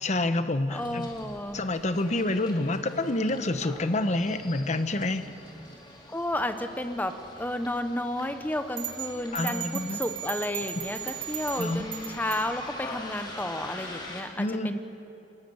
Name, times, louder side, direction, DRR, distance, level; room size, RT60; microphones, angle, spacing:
voice 1, 0.0-1.1 1.5-5.3 9.3-10.0 11.6-11.9 14.4-14.8, left 2 dB, 40° left, 10 dB, 1.0 m, -28 dB
voice 2, 0.7-1.6 6.1-14.8, left 1 dB, 10° left, 8 dB, 1.0 m, -32 dB
Bus, 0.8-14.2, left 2 dB, 25° left, 3.2 m, -45 dB
sound 1, 8.8-12.5, right 12 dB, 30° right, 2.3 m, -36 dB
26.5 x 17.5 x 7.1 m, 2.9 s
head